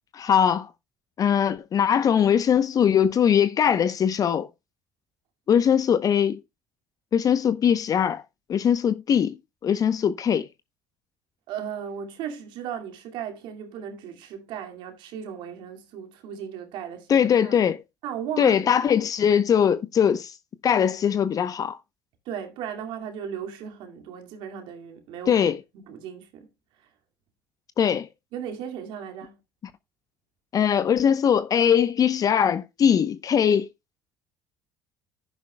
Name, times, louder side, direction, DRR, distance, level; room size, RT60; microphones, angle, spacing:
voice 1, 0.1-0.7 1.2-4.5 5.5-6.4 7.1-8.2 8.5-10.5 17.1-17.8 18.4-20.3 20.6-21.8 25.3-25.6 27.8-28.1 30.5-33.7, left 8 dB, 45° left, 0.8 m, -21 dB
voice 2, 11.5-17.6 18.0-18.6 22.3-25.3 25.8-26.5 28.3-29.4, right 8 dB, 70° right, 2.3 m, -36 dB
11.0 x 10.5 x 2.3 m
hypercardioid pair, 70°, 9 cm